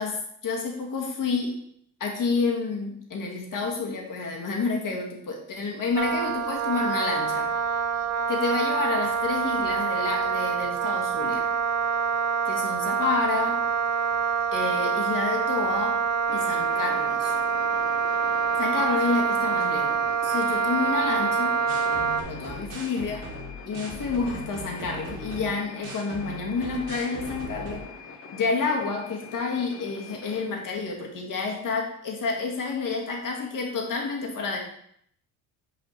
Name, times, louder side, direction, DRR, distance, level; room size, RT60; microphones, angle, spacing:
voice 1, 0.0-1.6 2.0-7.5 8.3-11.5 12.4-13.6 14.5-16.0 16.3-17.3 18.6-21.6 22.3-23.3 23.7-27.8 28.3-34.6, left 4 dB, 45° left, 0 dB, 1.8 m, -29 dB
Wind instrument woodwind instrument, 6.0-22.2, right 6 dB, 40° right, 0.5 m, -26 dB
sound 1, 16.3-30.5, left 4 dB, 30° left, 1.0 m, -44 dB
sound 2, 21.7-27.8, right 1 dB, 70° right, 1.8 m, -39 dB
6.3 x 5.0 x 3.1 m, 0.67 s
supercardioid pair, 80°, 45 cm